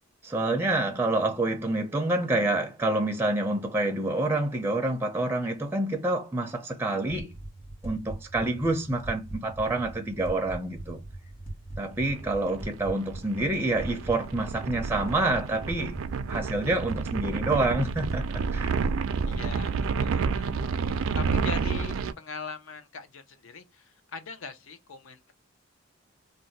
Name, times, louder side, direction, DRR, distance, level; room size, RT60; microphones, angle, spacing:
voice 1, 0.2-7.3 7.8-11.0 11.8-16.0 16.3-18.7, right 2 dB, 10° right, 0.4 m, -27 dB
sound 1, 7.1-20.0, right 1 dB, 30° left, 1.3 m, -41 dB
sound 2, 12.1-22.1, right 5 dB, 75° right, 0.4 m, -30 dB
voice 2, 19.3-19.7 20.0-20.3 20.6-25.3, left 4 dB, 70° left, 0.6 m, -41 dB
2.5 x 2.1 x 3.9 m
head